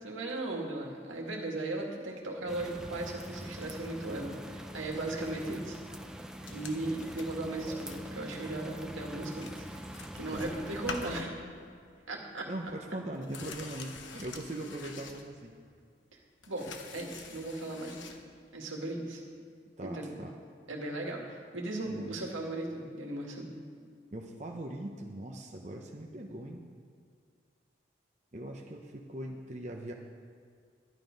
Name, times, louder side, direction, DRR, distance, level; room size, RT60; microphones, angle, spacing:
voice 1, 0.0-5.8 6.4-9.7 9.9-11.3 12.1-12.5 14.1-14.2 16.5-18.1 18.5-19.2 19.8-20.2 20.7-23.5, right 2 dB, 85° right, 0 dB, 2.0 m, -37 dB
sound 1, 2.5-11.2, equal, 5° right, 0.4 m, -44 dB
sound 2, 6.5-8.1 8.4-8.6 9.0-9.1 9.3-11.9 12.2-12.3 12.6-15.7 16.1-18.2 19.2-19.3, left 4 dB, 75° left, 1.0 m, -46 dB
voice 2, 12.5-15.5 19.8-20.4 21.8-22.1 24.1-26.7 28.3-29.9, right 1 dB, 35° right, 0 dB, 0.7 m, -41 dB
11.5 x 11.0 x 5.2 m, 2.2 s
head